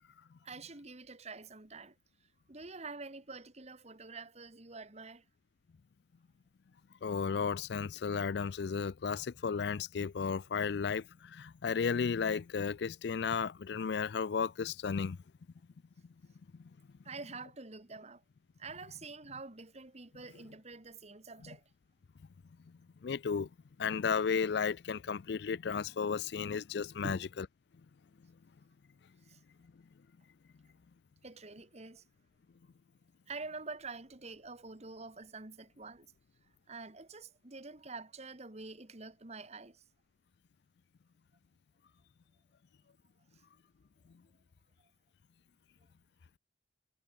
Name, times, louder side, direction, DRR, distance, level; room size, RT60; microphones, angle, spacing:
voice 1, 0.4-2.0 2.5-5.2 17.1-18.2 18.6-21.6 27.0-27.3 29.3-29.4 31.2-32.0 33.3-36.1 36.7-39.8, right 3 dB, 35° right, 1.7 m, -47 dB
voice 2, 7.0-15.2 16.5-16.6 23.0-23.5 23.8-27.5, left 6 dB, 60° left, 0.4 m, -34 dB
head